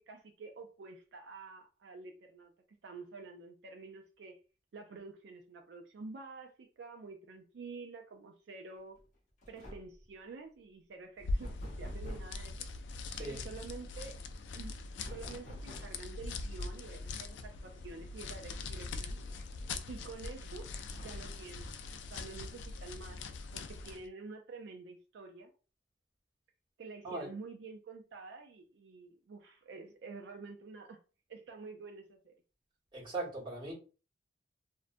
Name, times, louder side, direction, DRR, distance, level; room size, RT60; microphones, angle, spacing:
voice 1, 0.1-2.5 2.8-4.4 4.7-9.0 9.5-12.7 13.2-14.2 14.5-14.7 15.0-19.2 19.9-20.6 20.9-21.8 22.1-23.2 23.5-25.5 26.8-31.0 31.3-32.3, right 4 dB, 70° right, 0.4 m, -48 dB
sound 1, 9.0-9.2 9.4-10.1 11.4-12.4 15.0-16.1 17.7-17.8 18.2-18.3 19.2-19.9 20.8-21.5, equal, 45° left, 0.7 m, -49 dB
sound 2, 11.2-24.1, left 3 dB, 85° left, 0.3 m, -42 dB
voice 2, 13.1-13.4 27.0-27.3 32.9-33.7, right 2 dB, 25° right, 1.2 m, -39 dB
2.5 x 2.1 x 2.5 m
head